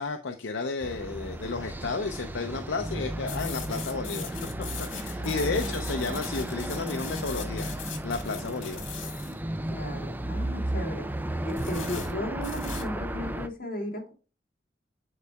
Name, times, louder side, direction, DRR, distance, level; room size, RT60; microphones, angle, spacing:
voice 1, 0.0-4.4 4.8-8.8, left 3 dB, 70° left, 5 dB, 0.6 m, -32 dB
sound 1, 0.8-13.5, right 1 dB, 10° right, 0.4 m, -34 dB
sound 2, 3.3-9.4 11.5-12.9, left 6 dB, 85° left, 1.6 m, -41 dB
voice 2, 5.2-5.8 9.7-11.1 11.4-14.1, equal, 50° left, -1 dB, 2.4 m, -35 dB
9.6 x 4.7 x 2.2 m, 0.35 s
head